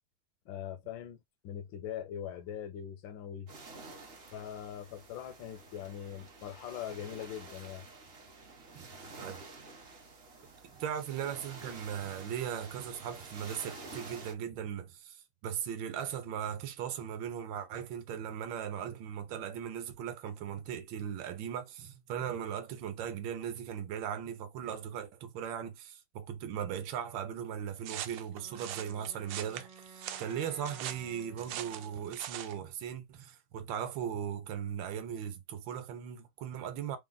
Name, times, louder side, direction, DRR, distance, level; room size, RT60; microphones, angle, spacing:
voice 1, 0.5-3.5 4.3-7.8, left 9 dB, 75° left, 1.3 m, -42 dB
sound 1, 3.5-14.3, right 3 dB, 45° right, 0.8 m, -50 dB
voice 2, 10.7-37.0, right 9 dB, 70° right, 1.4 m, -38 dB
sound 2, 27.8-32.6, right 11 dB, 90° right, 1.5 m, -42 dB
Wind instrument woodwind instrument, 28.3-32.3, right 3 dB, 30° right, 0.4 m, -54 dB
3.5 x 2.4 x 3.8 m
omnidirectional pair, 2.3 m